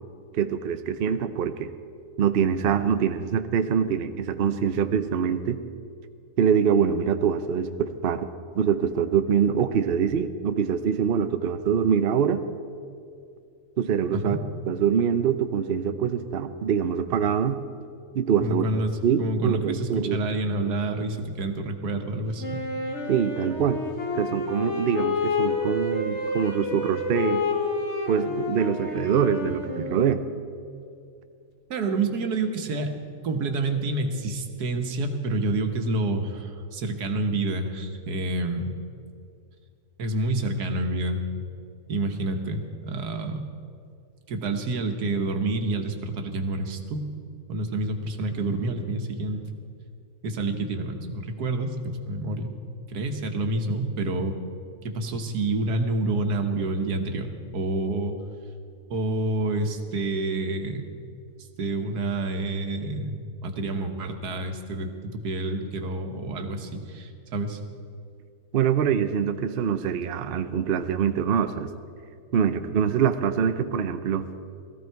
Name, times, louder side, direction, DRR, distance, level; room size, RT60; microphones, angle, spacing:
voice 1, 0.3-1.7 2.2-5.6 6.4-8.3 8.6-12.4 13.8-14.4 14.7-17.6 18.1-18.6 19.0-20.2 23.1-23.8 24.2-27.4 28.1-30.2 68.5-71.7 72.3-74.3, right 7 dB, 55° right, 9 dB, 0.7 m, -24 dB
voice 2, 18.4-22.6 31.7-32.9 33.2-38.7 40.0-41.2 41.9-43.5 44.3-47.0 47.5-49.4 50.2-52.6 52.9-54.4 54.8-58.2 58.9-60.9 61.6-67.6, right 2 dB, 90° right, 5 dB, 1.7 m, -28 dB
Wind instrument woodwind instrument, 22.4-30.4, left 3 dB, 50° left, 1.7 m, -29 dB
17.5 x 14.0 x 4.6 m, 2.4 s
omnidirectional pair, 1.6 m